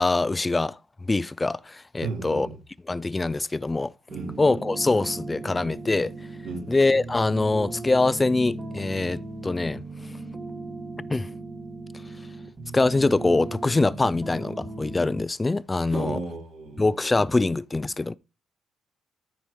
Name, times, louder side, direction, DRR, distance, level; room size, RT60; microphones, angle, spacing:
voice 1, 0.0-2.5 2.9-3.9 4.4-6.1 6.7-9.8 11.1-11.3 12.7-16.2 16.8-18.1, left 3 dB, 20° left, 0.4 m, -24 dB
voice 2, 2.0-2.6 4.1-4.4 6.4-6.7 15.9-16.8, right 3 dB, 70° right, 3.8 m, -34 dB
sound 1, 4.1-15.3, right 2 dB, 30° right, 1.4 m, -37 dB
13.0 x 5.1 x 3.1 m
cardioid pair, 90°, 0 cm